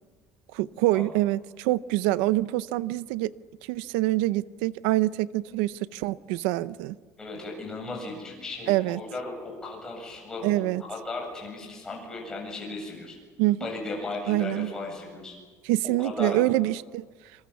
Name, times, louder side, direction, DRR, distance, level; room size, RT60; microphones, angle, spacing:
voice 1, 0.5-3.3 3.6-7.0 8.7-9.0 10.4-10.8 13.4-13.7 14.3-14.7 15.6-17.1, right 17 dB, 85° right, 16 dB, 0.7 m, -25 dB
voice 2, 7.2-13.2 13.6-15.3 16.0-16.4, left 2 dB, 10° left, 0 dB, 7.8 m, -36 dB
26.5 x 26.0 x 7.1 m, 1.5 s
cardioid pair, 180°, 6 cm